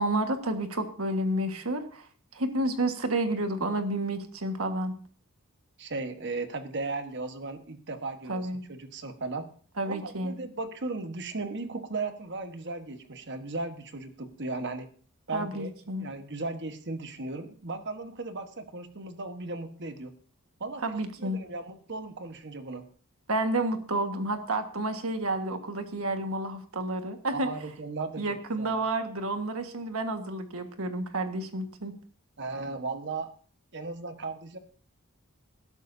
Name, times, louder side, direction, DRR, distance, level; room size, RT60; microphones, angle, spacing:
voice 1, 0.0-2.1 2.3-4.9 8.3-8.6 9.8-10.3 15.3-16.1 20.8-21.4 23.3-27.5 28.2-31.9, right 2 dB, 70° right, 6 dB, 1.6 m, -30 dB
voice 2, 5.8-9.5 9.8-14.9 15.3-15.7 16.0-20.1 20.6-22.9 27.3-28.8 32.4-33.3 33.7-34.6, right 3 dB, 50° right, 8 dB, 1.3 m, -36 dB
20.0 x 11.5 x 2.7 m, 0.43 s
head